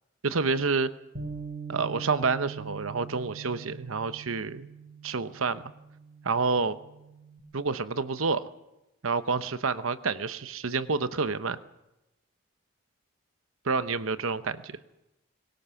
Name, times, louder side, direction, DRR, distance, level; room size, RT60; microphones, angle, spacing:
voice 1, 0.2-0.9 1.7-4.7 5.0-5.7 6.2-6.8 7.5-8.5 9.0-11.6 13.6-14.8, right 4 dB, 80° right, 12 dB, 0.9 m, -28 dB
Bass guitar, 1.1-7.4, right 5 dB, 65° right, 4.7 m, -43 dB
23.0 x 20.5 x 7.1 m, 0.96 s
head